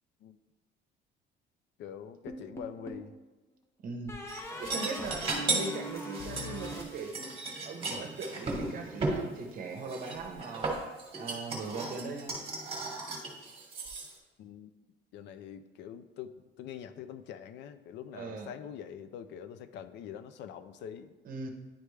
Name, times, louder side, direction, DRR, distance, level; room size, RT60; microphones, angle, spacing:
voice 1, 1.8-3.2 14.4-14.7 15.1-21.1, left 9 dB, 60° left, 11 dB, 0.4 m, -44 dB
sound 1, 2.3-3.1 4.1-7.6, equal, 15° left, 0.6 m, -41 dB
voice 2, 3.8-4.2 4.6-7.3 7.6-10.7 11.2-12.4 18.1-18.5 21.2-21.5, right 4 dB, 45° right, 4 dB, 0.8 m, -40 dB
sound 2, 4.3-9.2 9.9-14.1, right 3 dB, 30° right, 1.2 m, -35 dB
10.0 x 3.3 x 3.2 m, 1.2 s
cardioid pair, 150°, 20 cm